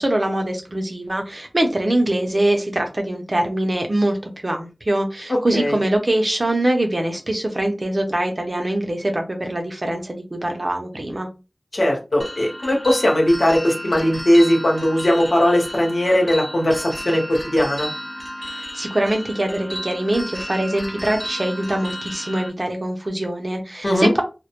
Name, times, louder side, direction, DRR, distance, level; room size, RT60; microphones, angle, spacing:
voice 1, 0.0-4.2 4.4-11.3 18.4-24.2, right 1 dB, 50° right, 4 dB, 0.6 m, -23 dB
voice 2, 5.3-5.8 11.7-17.9 23.8-24.1, left 1 dB, 85° left, -1 dB, 0.9 m, -18 dB
sound 1, 12.2-22.5, equal, 5° left, 0.6 m, -33 dB
2.1 x 2.1 x 2.9 m, 0.30 s
wide cardioid pair, 55°, 0 cm